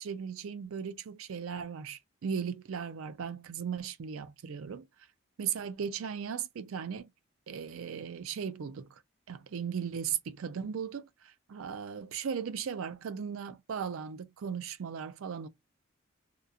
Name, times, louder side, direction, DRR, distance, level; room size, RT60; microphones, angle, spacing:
voice 1, 0.0-4.9 5.4-7.1 7.5-8.9 9.3-15.5, right 7 dB, 70° right, 0.4 m, -37 dB
2.9 x 2.3 x 2.4 m
head